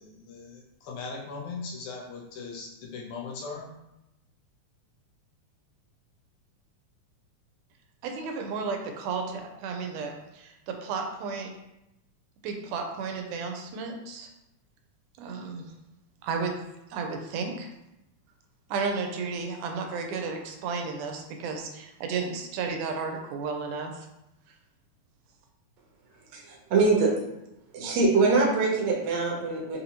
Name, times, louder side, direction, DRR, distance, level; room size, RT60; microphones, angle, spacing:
voice 1, 0.0-3.7, left 4 dB, 80° left, -2 dB, 2.0 m, -39 dB
voice 2, 8.0-11.5 12.4-14.3 15.2-15.6 16.2-16.5 16.9-17.7 18.7-24.1, right 4 dB, 90° right, 3 dB, 2.1 m, -33 dB
voice 3, 26.3-27.1 27.7-29.8, right 3 dB, 70° right, -1 dB, 2.0 m, -23 dB
5.4 x 2.7 x 2.9 m, 0.89 s
omnidirectional pair, 3.5 m